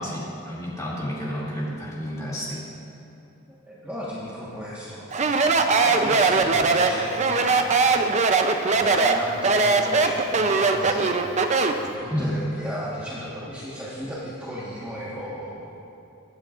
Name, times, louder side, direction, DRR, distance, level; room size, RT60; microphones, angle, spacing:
voice 1, 0.0-2.6 12.1-12.3, equal, 15° left, -7 dB, 2.6 m, -30 dB
voice 2, 3.6-8.3 8.7-15.7, equal, 10° right, -9 dB, 1.4 m, -36 dB
Speech, 5.1-11.9, right 4 dB, 35° right, 0.6 m, -20 dB
24.0 x 8.7 x 2.5 m, 2.9 s
head